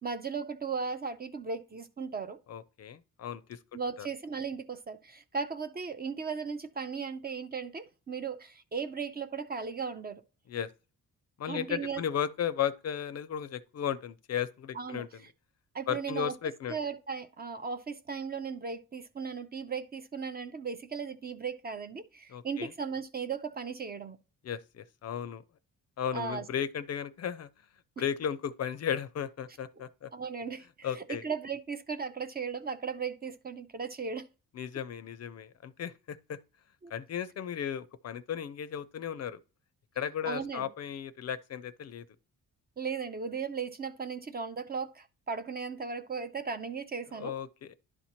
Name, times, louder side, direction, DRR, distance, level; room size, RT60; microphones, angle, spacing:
voice 1, 0.0-2.4 3.7-10.2 11.5-12.0 14.7-15.0 15.7-16.3 16.7-24.2 26.1-26.4 30.1-34.3 36.8-36.9 40.2-40.7 42.8-47.3, right 5 dB, 30° right, 0.4 m, -36 dB
voice 2, 2.5-3.6 4.0-4.1 10.5-10.7 11.4-15.2 15.9-16.8 22.3-22.7 24.4-25.4 26.0-27.5 28.0-30.1 30.8-31.2 34.5-36.4 36.9-39.4 40.0-42.1 47.1-47.7, left 9 dB, 45° left, 0.5 m, -35 dB
11.0 x 4.2 x 2.9 m
cardioid pair, 150°, 35 cm